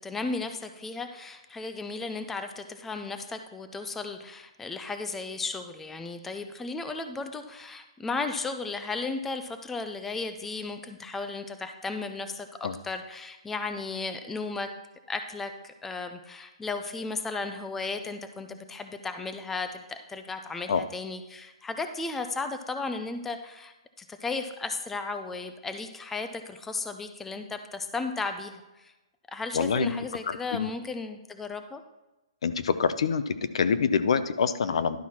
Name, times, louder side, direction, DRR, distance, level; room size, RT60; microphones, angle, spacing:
voice 1, 0.0-14.7 15.1-28.9 29.3-31.8, left 3 dB, 5° left, 7 dB, 0.4 m, -35 dB
voice 2, 29.5-29.9 30.3-30.7 32.4-33.2 33.5-35.0, left 6 dB, 70° left, 12 dB, 0.7 m, -25 dB
11.5 x 4.6 x 5.7 m, 1.0 s
hypercardioid pair, 160°, 3 cm